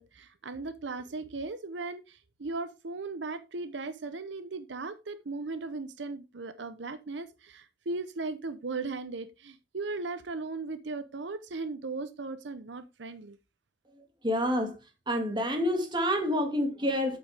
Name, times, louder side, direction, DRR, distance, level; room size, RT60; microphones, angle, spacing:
voice 1, 0.0-13.4, right 3 dB, 75° right, 0.7 m, -37 dB
voice 2, 14.2-14.8 15.1-17.2, equal, 25° right, 2.1 m, -28 dB
8.4 x 8.2 x 3.4 m
head